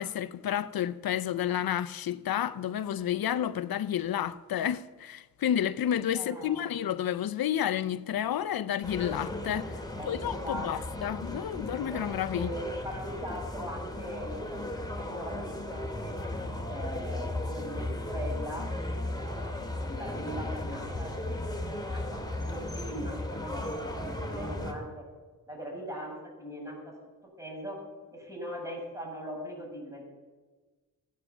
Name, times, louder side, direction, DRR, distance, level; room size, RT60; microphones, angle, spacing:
voice 1, 0.0-12.5, left 10 dB, 90° left, 0.6 m, -31 dB
voice 2, 6.1-6.8 9.9-11.4 12.3-16.1 16.7-18.7 19.1-19.5 19.8-21.5 21.9-25.0 25.5-27.0 27.2-27.8 28.1-30.0, equal, 10° right, 6.1 m, -41 dB
sound 1, 8.8-24.7, left 1 dB, 10° left, 2.2 m, -36 dB
16.0 x 9.4 x 6.9 m
wide cardioid pair, 80°, 35 cm